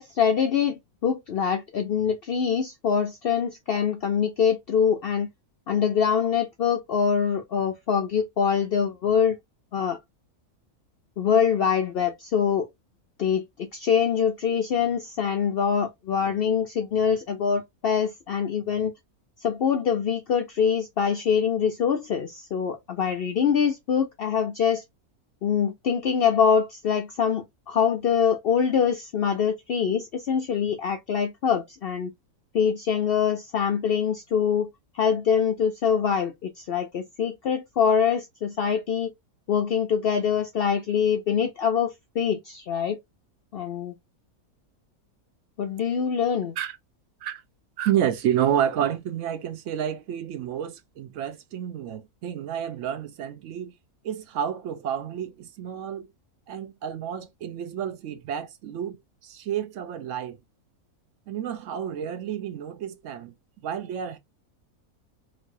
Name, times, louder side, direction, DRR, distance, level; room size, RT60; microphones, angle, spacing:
voice 1, 0.0-5.3 5.7-9.3 9.7-10.0 11.2-12.7 13.2-18.9 19.4-24.8 25.4-32.1 32.5-34.7 34.9-39.1 39.5-43.0 43.5-43.9 45.6-46.5, left 7 dB, 80° left, 0.5 m, -24 dB
voice 2, 47.8-53.7 54.0-56.1 56.5-59.0 59.2-60.4 61.3-63.3 63.6-64.2, right 9 dB, 65° right, 0.8 m, -30 dB
3.1 x 2.5 x 2.5 m
omnidirectional pair, 1.6 m